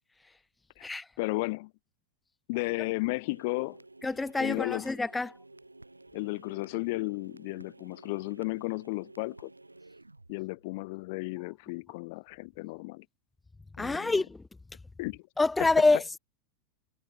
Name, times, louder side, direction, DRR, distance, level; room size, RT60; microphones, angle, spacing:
voice 1, 1.2-1.7 2.5-3.8 4.4-4.8 6.1-9.5 10.3-13.0 13.8-14.1 15.0-15.2, left 25 dB, 50° left, 1.6 m, -34 dB
sound 1, 3.3-11.2, right 2 dB, 85° right, 6.8 m, -54 dB
voice 2, 4.0-5.4 13.8-14.4 15.4-16.2, left 3 dB, 10° left, 0.7 m, -26 dB
figure-of-eight pair, 90°, 0 cm